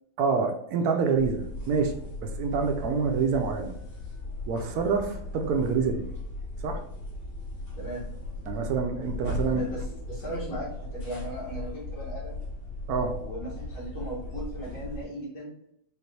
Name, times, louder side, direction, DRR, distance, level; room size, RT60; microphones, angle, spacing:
voice 1, 0.2-3.7 4.5-6.0 6.6-6.8 8.4-9.6 12.9-13.2, right 5 dB, 75° right, 4 dB, 0.9 m, -27 dB
sound 1, 1.1-15.0, left 2 dB, 65° left, 2.3 m, -37 dB
voice 2, 9.5-12.4 13.2-15.5, right 1 dB, 90° left, -9 dB, 2.1 m, -37 dB
5.1 x 2.5 x 3.1 m, 0.77 s
omnidirectional pair, 2.1 m